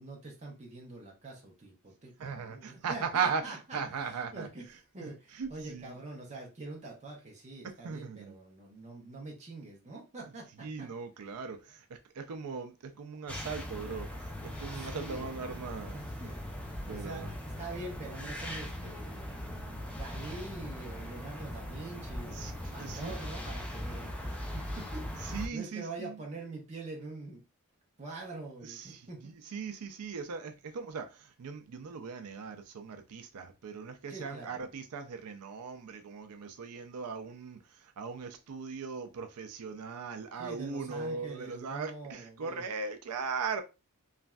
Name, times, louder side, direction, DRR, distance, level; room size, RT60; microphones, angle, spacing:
voice 1, 0.0-3.8 4.3-4.6 4.9-10.9 14.5-15.4 15.9-27.4 28.0-29.3 34.1-34.6 40.4-42.6, right 2 dB, 30° right, 0.7 m, -45 dB
voice 2, 2.2-4.5 5.0-6.0 7.6-8.3 10.6-14.1 14.4-16.0 16.9-17.3 22.3-23.2 25.2-26.2 28.6-43.6, right 5 dB, 80° right, 0.4 m, -38 dB
sound 1, 13.3-25.5, left 1 dB, 5° left, 0.5 m, -40 dB
3.1 x 2.5 x 2.2 m
head